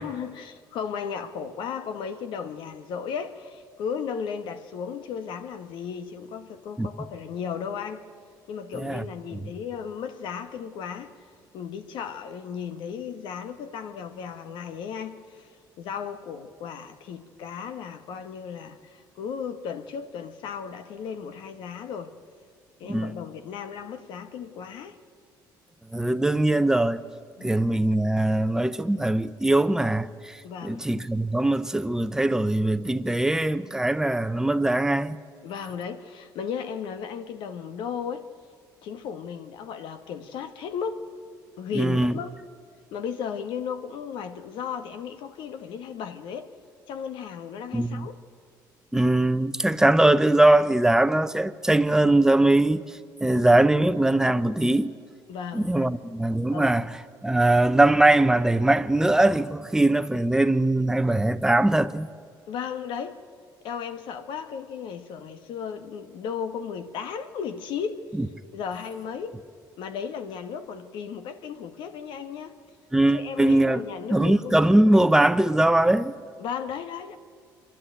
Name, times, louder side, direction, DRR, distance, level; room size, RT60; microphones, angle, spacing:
voice 1, 0.0-8.0 8.5-11.2 11.5-15.5 15.8-22.1 22.8-25.0 27.4-27.5 30.4-30.8 35.4-38.3 38.8-41.0 41.6-42.3 42.9-46.5 46.9-48.2 55.3-55.9 56.5-56.7 62.5-63.2 63.6-68.1 68.5-69.4 69.8-72.6 73.1-74.8 76.4-77.2, left 7 dB, 75° left, 1.4 m, -35 dB
voice 2, 22.8-23.1 25.9-27.0 27.4-35.2 41.7-42.1 47.7-48.1 48.9-54.9 55.5-62.1 68.2-68.3 72.9-73.8 74.1-76.1, right 1 dB, 5° right, 0.8 m, -21 dB
26.0 x 11.5 x 9.2 m
supercardioid pair, 85°, 8 cm